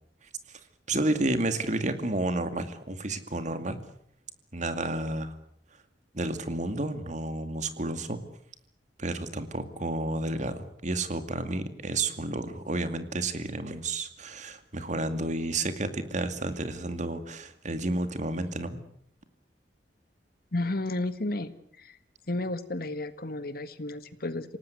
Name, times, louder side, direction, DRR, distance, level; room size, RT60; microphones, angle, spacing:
voice 1, 0.9-3.8 4.5-5.4 6.1-8.2 9.0-18.8, right 2 dB, 45° right, 10 dB, 2.4 m, -31 dB
voice 2, 20.5-22.0 22.3-24.6, left 2 dB, 60° left, 12 dB, 1.8 m, -32 dB
27.5 x 18.5 x 8.0 m, 0.66 s
head